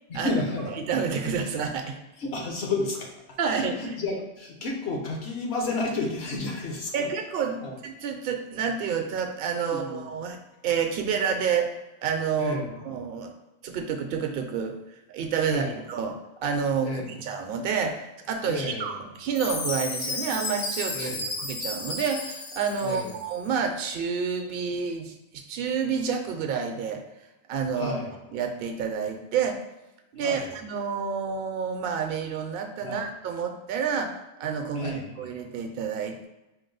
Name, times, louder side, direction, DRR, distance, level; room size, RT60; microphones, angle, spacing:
voice 1, 0.1-0.8 2.2-7.1 7.6-7.8 9.6-10.1 12.4-12.9 15.4-15.8 16.8-17.2 18.4-19.0 20.9-21.4 22.8-23.1 27.7-28.2 30.2-30.5 32.8-33.0 34.7-35.3, left 2 dB, 70° left, 0 dB, 1.1 m, -32 dB
voice 2, 0.7-2.0 3.4-3.8 6.9-10.4 10.6-11.7 12.0-13.3 13.6-14.8 15.1-27.0 27.5-28.0 28.3-29.6 30.1-36.3, right 6 dB, 65° right, 4 dB, 0.7 m, -29 dB
Chime, 19.4-23.4, left 3 dB, 55° left, 0.6 m, -33 dB
4.6 x 2.0 x 3.8 m, 0.98 s
omnidirectional pair, 1.1 m